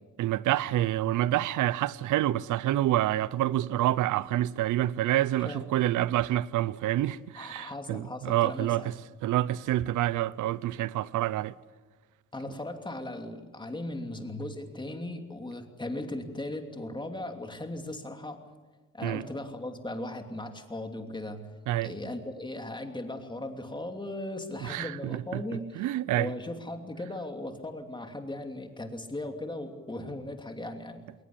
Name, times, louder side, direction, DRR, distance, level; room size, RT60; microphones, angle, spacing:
voice 1, 0.2-8.9 9.2-11.6 19.0-19.2 21.7-22.0 24.6-25.4 25.8-26.3, right 14 dB, 80° right, 0.7 m, -27 dB
voice 2, 7.4-8.9 12.3-18.4 18.9-21.5 21.8-25.8 26.2-31.1, left 1 dB, 15° left, 2.8 m, -37 dB
21.0 x 19.5 x 8.5 m
cardioid pair, 90°, 30 cm